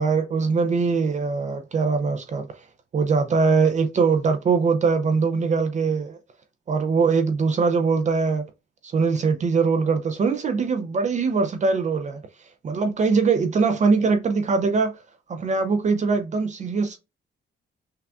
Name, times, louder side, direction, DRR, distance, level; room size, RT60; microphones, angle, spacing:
voice 1, 0.0-2.5 2.9-6.2 6.7-8.4 8.9-12.2 12.6-14.9 15.3-17.0, right 4 dB, 35° right, 0.4 m, -22 dB
5.8 x 2.4 x 2.3 m
cardioid pair, 160°, 20 cm